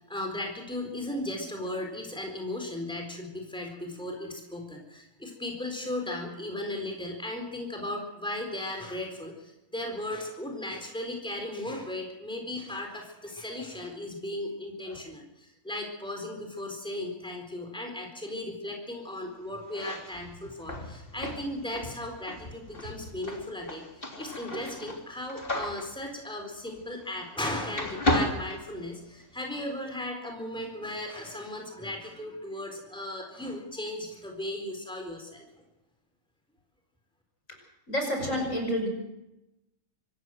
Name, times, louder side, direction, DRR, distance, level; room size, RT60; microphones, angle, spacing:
voice 1, 0.0-23.9 24.2-35.4, left 1 dB, 5° left, 2 dB, 4.2 m, -36 dB
sound 1, 19.6-27.4 27.7-29.4, left 2 dB, 40° left, 3.5 m, -34 dB
voice 2, 37.9-38.9, equal, 60° left, 2 dB, 6.4 m, -29 dB
25.0 x 14.5 x 7.8 m, 0.90 s
omnidirectional pair, 1.5 m